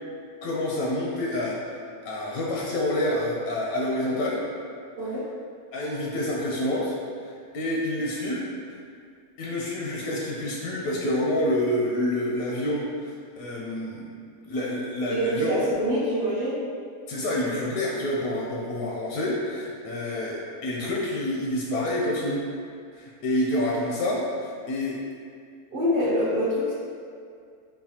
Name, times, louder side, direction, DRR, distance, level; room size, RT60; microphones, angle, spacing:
voice 1, 0.4-1.8 2.0-4.4 5.7-7.0 7.2-8.8 9.4-13.1 13.4-14.1 14.4-15.5 17.1-22.4 22.9-25.0, left 1 dB, 80° left, -3 dB, 1.0 m, -28 dB
voice 2, 15.1-16.6 25.7-26.7, equal, 50° right, -11 dB, 0.7 m, -25 dB
5.7 x 2.2 x 2.8 m, 2.2 s
omnidirectional pair, 1.5 m